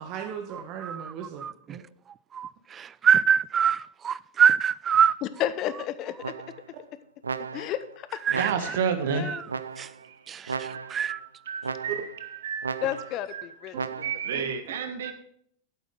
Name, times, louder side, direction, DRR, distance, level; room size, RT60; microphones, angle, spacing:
voice 1, 0.0-1.8 11.9-12.0 14.3-14.4, right 8 dB, 45° right, 1.2 m, -37 dB
voice 2, 2.3-5.1 8.3-8.8 9.3-9.4 9.8-9.9 10.3-11.2, right 8 dB, 25° right, 0.4 m, -24 dB
voice 3, 5.2-6.8 7.5-8.2 8.6-9.4 12.8-13.8 14.3-14.4, left 12 dB, 40° left, 0.8 m, -33 dB
sound 1, 6.2-6.8 7.2-7.9 8.3-9.0 9.5-10.1 10.5-11.1 11.6-12.2 12.6-13.3 13.7-14.4, right 5 dB, 80° right, 0.6 m, -35 dB
voice 4, 8.3-9.3 10.7-12.8 13.3-13.4 14.0-15.1, right 7 dB, 65° right, 1.6 m, -31 dB
11.5 x 9.1 x 3.7 m
figure-of-eight pair, 90°, 0 cm